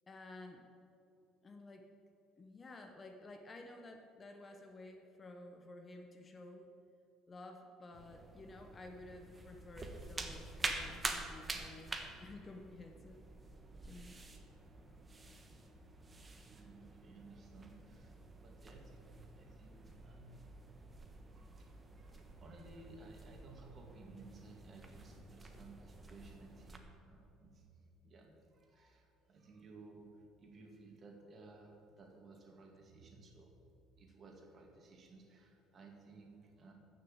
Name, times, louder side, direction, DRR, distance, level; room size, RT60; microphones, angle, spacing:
voice 1, 0.1-0.7 1.4-1.9 2.4-6.7 7.3-13.2 13.8-14.2, left 2 dB, 25° left, 4 dB, 0.9 m, -53 dB
sound 1, 7.9-26.8, right 3 dB, 20° right, 1.1 m, -48 dB
voice 2, 16.4-20.5 21.3-33.5 33.9-36.7, right 3 dB, 35° right, 1 dB, 2.2 m, -57 dB
13.5 x 6.5 x 8.7 m, 2.6 s
cardioid pair, 140°, 0 cm